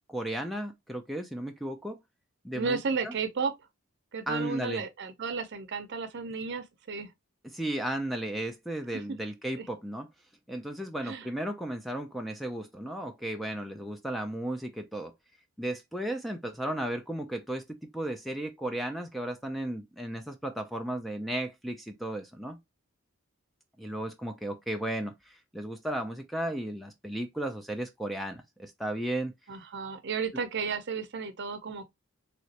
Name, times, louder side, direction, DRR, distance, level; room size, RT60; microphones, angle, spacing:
voice 1, 0.1-2.0 2.4-3.1 4.3-4.8 7.5-10.1 10.5-15.1 15.6-22.6 23.8-29.3, right 1 dB, ahead, 0.3 m, -35 dB
voice 2, 2.5-3.5 4.1-7.1 8.9-9.0 9.6-9.7 11.0-11.3 29.5-31.9, right 5 dB, 55° right, 0.6 m, -33 dB
3.2 x 3.0 x 2.7 m
head